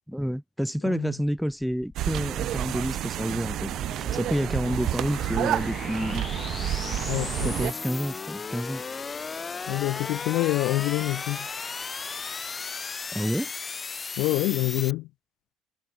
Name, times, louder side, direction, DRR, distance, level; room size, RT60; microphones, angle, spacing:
voice 1, 0.1-6.3 7.4-8.8 13.1-13.5, equal, ahead, 0.4 m, -29 dB
voice 2, 0.8-1.1 7.1-7.5 9.7-11.5 14.2-15.1, left 19 dB, 80° left, 1.1 m, -26 dB
sound 1, 1.4-14.9, left 5 dB, 25° left, 1.5 m, -36 dB
sound 2, 2.0-7.7, right 13 dB, 60° right, 0.4 m, -30 dB
cardioid pair, 110°, 0 cm